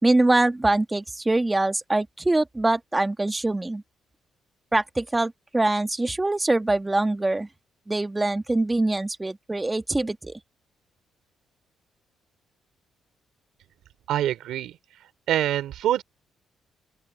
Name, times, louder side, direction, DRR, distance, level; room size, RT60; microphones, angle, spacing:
voice 1, 0.0-3.8 4.7-7.5 7.9-10.4, right 2 dB, 15° right, 1.6 m, -23 dB
voice 2, 14.1-14.7 15.3-16.0, right 12 dB, 80° right, 2.8 m, -25 dB
open air
cardioid pair, 90°, 0 cm